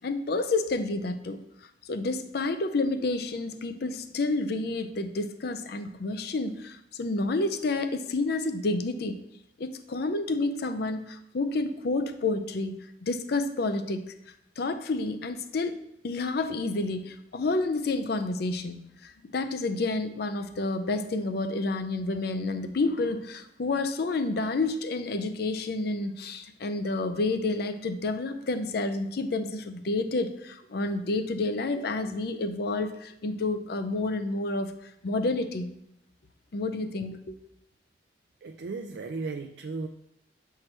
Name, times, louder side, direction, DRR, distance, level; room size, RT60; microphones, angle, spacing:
voice 1, 0.0-1.4 1.9-9.2 9.6-14.0 14.6-15.8 16.0-35.7 36.5-37.4, left 2 dB, 60° left, 10 dB, 0.5 m, -29 dB
voice 2, 38.4-39.9, right 3 dB, 65° right, 4 dB, 0.4 m, -35 dB
7.3 x 4.6 x 3.3 m, 0.80 s
head